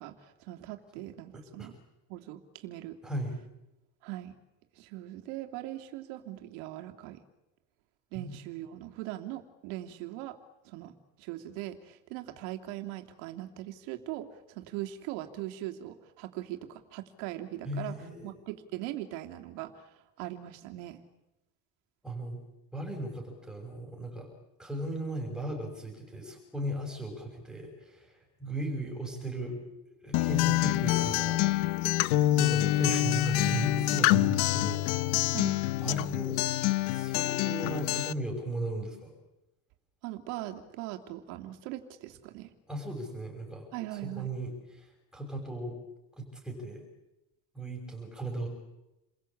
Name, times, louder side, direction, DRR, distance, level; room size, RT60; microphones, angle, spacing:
voice 1, 0.0-1.7 2.1-3.0 4.0-4.4 4.8-7.2 8.1-10.4 10.6-10.9 11.2-18.0 18.2-21.0 35.3-35.6 40.0-42.5 43.7-44.3, right 15 dB, 70° right, 5 dB, 2.9 m, -40 dB
voice 2, 1.3-1.7 3.0-3.4 8.1-8.3 17.6-18.3 22.0-22.4 22.7-24.3 24.6-28.1 28.4-29.6 30.0-31.7 32.4-34.8 35.1-35.4 35.8-36.4 36.9-39.1 42.7-43.7 43.9-45.8 46.2-46.8 47.5-48.5, right 1 dB, ahead, -1 dB, 5.9 m, -36 dB
Acoustic guitar, 30.1-38.1, left 16 dB, 85° left, 1.1 m, -26 dB
29.5 x 22.0 x 8.6 m, 0.95 s
cardioid pair, 180°, 40 cm